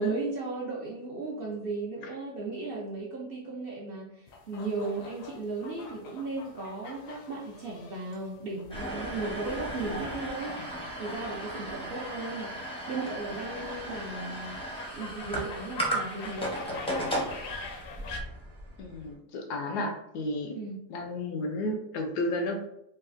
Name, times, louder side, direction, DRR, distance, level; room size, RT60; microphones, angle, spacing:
voice 1, 0.0-10.6 11.0-14.6 14.9-16.6 20.5-20.8, right 3 dB, 65° right, -3 dB, 0.5 m, -36 dB
sound 1, 4.3-18.2, left 4 dB, 70° left, 0.9 m, -45 dB
sound 2, 8.7-19.1, right 1 dB, 10° left, 0.4 m, -36 dB
voice 2, 18.8-20.6 20.9-22.6, left 1 dB, 85° left, 3 dB, 1.2 m, -32 dB
3.9 x 2.4 x 2.5 m, 0.76 s
omnidirectional pair, 1.7 m